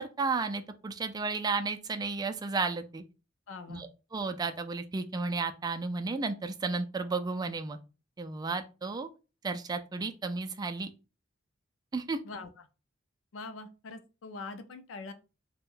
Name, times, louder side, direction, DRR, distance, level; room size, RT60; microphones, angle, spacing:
voice 1, 0.0-3.0 3.7-7.8 8.2-9.1 9.4-10.9 11.9-12.2, right 4 dB, 20° right, 7 dB, 0.3 m, -33 dB
voice 2, 3.5-3.9 12.2-12.5 13.3-15.1, left 3 dB, 80° left, 9 dB, 0.5 m, -43 dB
2.5 x 2.2 x 3.6 m, 0.32 s
head